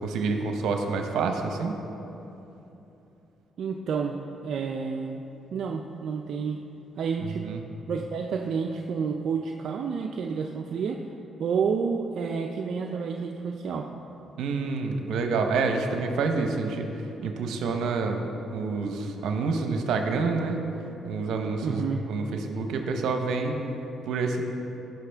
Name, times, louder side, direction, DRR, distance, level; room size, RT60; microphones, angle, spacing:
voice 1, 0.0-1.8 7.2-7.7 14.4-16.9 17.2-18.2 18.5-20.6 21.0-21.8 22.1-23.6 24.1-24.4, right 4 dB, 80° right, 4 dB, 0.9 m, -28 dB
voice 2, 3.6-4.2 4.4-5.2 5.5-6.6 7.0-7.5 7.9-11.0 11.4-13.9 21.6-22.0, right 5 dB, 65° right, 2 dB, 0.4 m, -29 dB
15.5 x 5.7 x 3.5 m, 3.0 s
cardioid pair, 90°, 0 cm